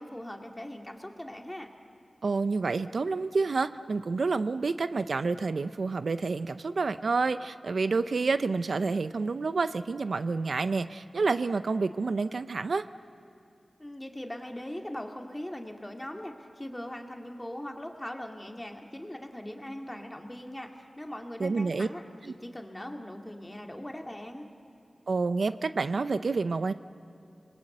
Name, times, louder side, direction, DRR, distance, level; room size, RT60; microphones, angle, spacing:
voice 1, 0.0-1.7 13.8-24.5, left 1 dB, 15° left, 3 dB, 2.2 m, -40 dB
voice 2, 2.2-12.9 21.4-21.9 22.2-22.3 25.1-26.7, right 4 dB, 80° right, 12 dB, 0.5 m, -28 dB
28.0 x 20.5 x 7.9 m, 2.6 s
cardioid pair, 50°, 0 cm